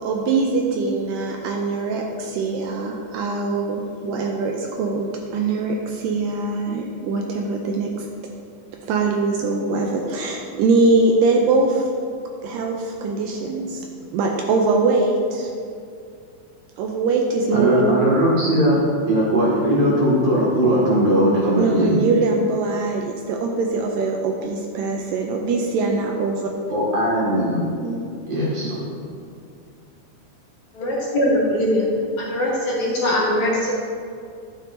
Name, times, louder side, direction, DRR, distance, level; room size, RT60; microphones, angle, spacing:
voice 1, 0.0-8.1 8.9-11.9 12.4-13.9 14.1-15.5 16.8-17.8 21.6-26.5 27.8-28.0, right 3 dB, 80° right, 1 dB, 2.2 m, -22 dB
voice 2, 17.5-18.8 19.1-22.0 26.7-27.6 28.3-28.9, equal, 50° right, -6 dB, 3.2 m, -19 dB
voice 3, 30.8-31.9 32.2-33.7, left 1 dB, 60° left, -5 dB, 2.5 m, -21 dB
11.5 x 9.2 x 2.8 m, 2.3 s
omnidirectional pair, 4.2 m